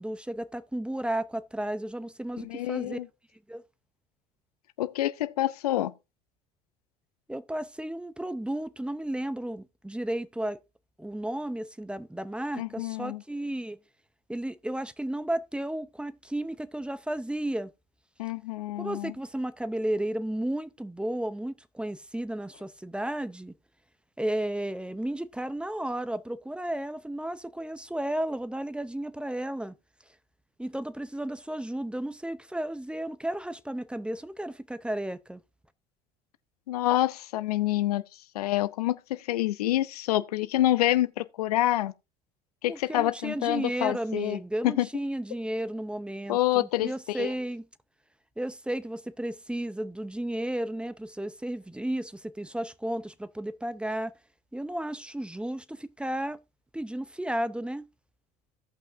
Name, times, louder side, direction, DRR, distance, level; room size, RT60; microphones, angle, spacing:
voice 1, 0.0-3.0 3.5-3.6 7.3-10.6 11.0-13.8 14.3-17.7 18.8-23.5 24.2-29.7 30.6-35.4 42.7-47.7 48.4-54.1 54.5-56.4 56.7-57.9, right 1 dB, 5° right, 0.7 m, -33 dB
voice 2, 2.4-3.1 4.8-5.9 12.6-13.2 18.2-19.1 36.7-38.0 38.3-41.9 42.6-44.4 44.6-44.9 46.3-47.3, left 14 dB, 85° left, 0.6 m, -27 dB
17.0 x 5.7 x 2.6 m
hypercardioid pair, 75°, 19 cm